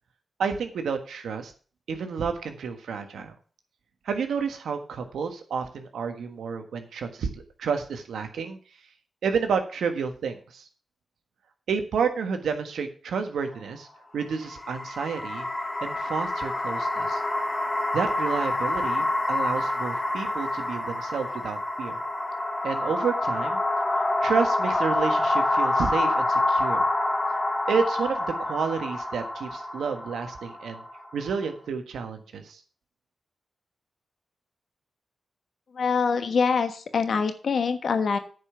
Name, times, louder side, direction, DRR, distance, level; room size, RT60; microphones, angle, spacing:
voice 1, 0.4-1.5 1.9-3.3 4.0-8.6 9.2-10.7 11.7-13.9 14.1-15.5 15.8-17.2 17.9-22.0 22.6-23.6 24.2-26.8 27.7-30.8 31.1-32.6, right 6 dB, 85° right, 6 dB, 1.5 m, -30 dB
sound 1, 14.3-31.5, left 2 dB, 30° left, 1.6 m, -27 dB
voice 2, 35.7-38.2, left 5 dB, 70° left, 8 dB, 1.3 m, -24 dB
9.6 x 5.4 x 7.1 m, 0.41 s
cardioid pair, 50°, 0 cm